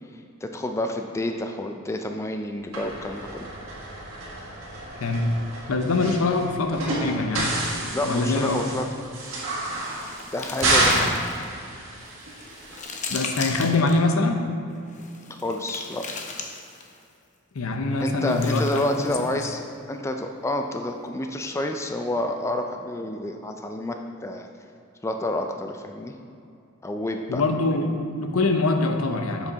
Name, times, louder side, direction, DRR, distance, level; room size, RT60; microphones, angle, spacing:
voice 1, 0.4-3.5 7.9-8.8 10.3-11.2 15.3-16.0 18.0-24.5 25.0-26.1 26.8-27.4, left 1 dB, 15° left, 4 dB, 0.3 m, -29 dB
sound 1, 2.7-12.8, right 2 dB, 70° right, 1.7 m, -29 dB
voice 2, 5.0-5.4 5.7-7.6 8.1-8.6 10.9-11.1 13.1-14.5 17.5-18.8 27.3-29.5, left 3 dB, 80° left, 5 dB, 0.7 m, -24 dB
sound 2, 9.2-11.5 12.0-14.0 14.9-17.0 18.0-19.6, left 4 dB, 35° left, 0.7 m, -38 dB
7.4 x 5.4 x 3.9 m, 2.5 s
head